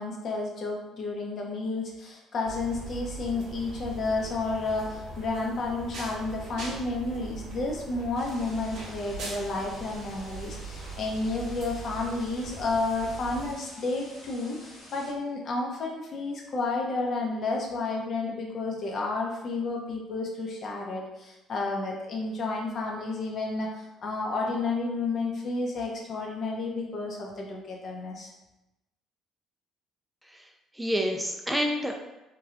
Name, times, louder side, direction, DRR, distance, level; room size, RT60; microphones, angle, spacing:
voice 1, 0.0-28.3, left 3 dB, 55° left, -1 dB, 0.7 m, -31 dB
sound 1, 2.4-13.5, right 3 dB, 70° right, 0.6 m, -41 dB
sound 2, 8.1-15.1, left 1 dB, 70° left, 1.3 m, -49 dB
voice 2, 30.2-32.1, equal, 5° right, 2 dB, 0.3 m, -29 dB
3.1 x 2.3 x 2.4 m, 0.98 s
supercardioid pair, 65°, 0 cm